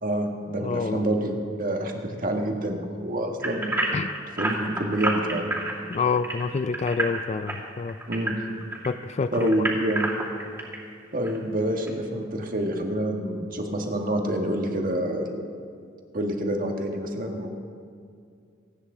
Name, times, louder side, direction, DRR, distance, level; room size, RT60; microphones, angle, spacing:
voice 1, 0.0-3.7 4.4-5.5 8.1-8.4 9.3-10.1 11.1-15.4 16.1-17.5, right 1 dB, 45° right, 2 dB, 1.6 m, -27 dB
voice 2, 0.6-1.1 3.9-4.1 5.9-8.0 8.8-9.7, left 5 dB, 35° left, 13 dB, 0.4 m, -27 dB
sound 1, 3.4-8.9 9.3-10.8 11.2-11.4 11.9-12.0, right 2 dB, 10° right, 2.7 m, -29 dB
27.5 x 9.7 x 3.8 m, 2.3 s
head